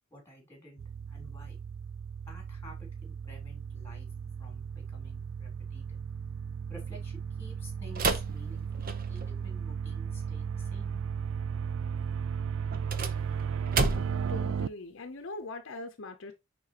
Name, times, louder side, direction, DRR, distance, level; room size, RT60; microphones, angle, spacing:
voice 1, 0.1-1.6 2.3-4.1 4.4-5.8 6.7-11.0, equal, 10° left, 3.5 m, -52 dB
sound 1, 0.8-14.7, right 6 dB, 65° right, 0.3 m, -35 dB
sound 2, 7.9-9.4 12.7-14.3, right 3 dB, 45° right, 0.8 m, -31 dB
voice 2, 14.3-16.3, left 2 dB, 60° left, 0.7 m, -41 dB
9.9 x 3.9 x 2.9 m
head